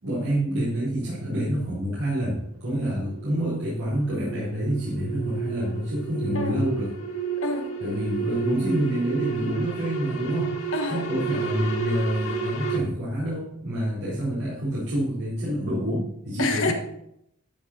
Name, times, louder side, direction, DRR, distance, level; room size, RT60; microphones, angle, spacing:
voice 1, 0.0-6.9 7.8-16.7, right 1 dB, 75° right, -10 dB, 4.3 m, -27 dB
sound 1, 2.4-12.8, right 5 dB, 75° left, 1.9 m, -32 dB
voice 2, 6.3-6.7 7.4-7.7 10.7-11.1 16.4-16.7, left 3 dB, 60° left, 4 dB, 1.4 m, -27 dB
13.5 x 6.0 x 4.3 m, 0.76 s
head